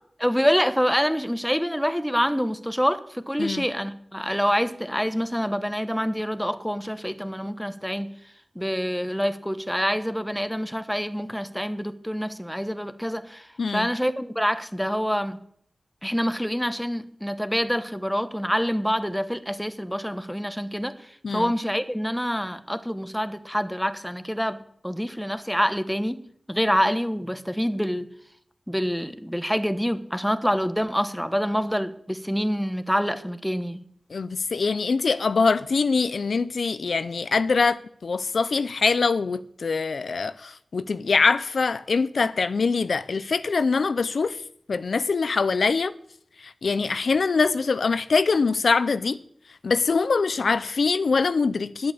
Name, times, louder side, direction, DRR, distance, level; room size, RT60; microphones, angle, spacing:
voice 1, 0.2-8.1 8.5-15.4 16.0-26.2 26.5-28.1 28.7-33.8, equal, ahead, 1.2 m, -26 dB
voice 2, 34.1-44.4 44.7-45.9 46.4-49.2 49.6-51.9, left 4 dB, 85° left, 0.5 m, -23 dB
10.5 x 8.7 x 8.5 m
cardioid pair, 45°, 0 cm